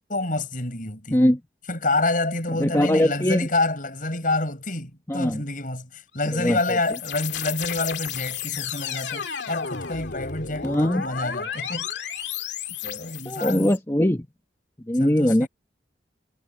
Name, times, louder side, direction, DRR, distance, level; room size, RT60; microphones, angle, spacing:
voice 1, 0.1-1.2 1.7-11.9 12.8-13.8 15.0-15.5, left 2 dB, 50° left, 6.4 m, -28 dB
voice 2, 2.6-3.5 5.1-5.4 6.3-6.8 10.6-11.0 13.2-14.3 14.9-15.5, left 1 dB, 15° left, 1.3 m, -21 dB
sound 1, 6.1-13.8, left 8 dB, 85° left, 2.2 m, -33 dB
head